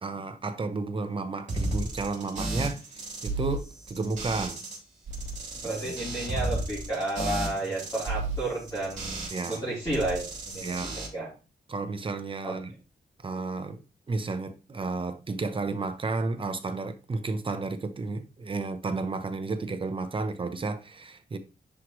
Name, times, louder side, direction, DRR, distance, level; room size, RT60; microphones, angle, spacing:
voice 1, 0.0-4.6 5.6-6.0 9.3-9.6 10.6-11.0 11.7-12.7 13.2-13.8 14.1-21.4, right 3 dB, 30° right, 0.8 m, -32 dB
sound 1, 1.5-4.8 5.1-9.6 9.9-11.1, right 2 dB, 45° right, 3.0 m, -33 dB
voice 2, 5.6-11.3 12.4-12.5, right 2 dB, 15° left, 3.4 m, -32 dB
9.9 x 4.7 x 3.1 m
wide cardioid pair, 175°, 18 cm